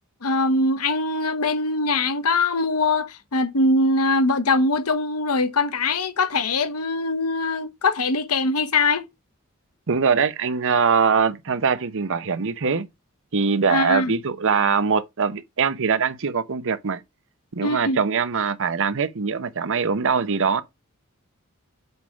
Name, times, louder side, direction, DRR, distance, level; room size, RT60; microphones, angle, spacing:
voice 1, 0.2-9.1 13.7-14.1 17.6-18.0, left 3 dB, 90° left, 0.9 m, -22 dB
voice 2, 9.9-12.9 13.3-17.0 17.5-20.6, right 5 dB, 65° right, 0.8 m, -22 dB
8.0 x 3.6 x 5.1 m
head